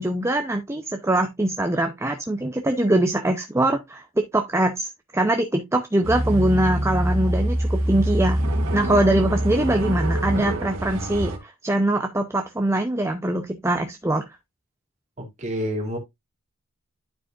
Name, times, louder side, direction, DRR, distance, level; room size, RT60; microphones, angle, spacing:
voice 1, 0.0-8.4 8.7-14.2, right 1 dB, 10° right, 0.6 m, -23 dB
sound 1, 6.0-11.4, right 1 dB, 85° right, 1.9 m, -24 dB
voice 2, 15.2-16.0, equal, 35° right, 2.6 m, -28 dB
11.0 x 4.7 x 2.4 m
head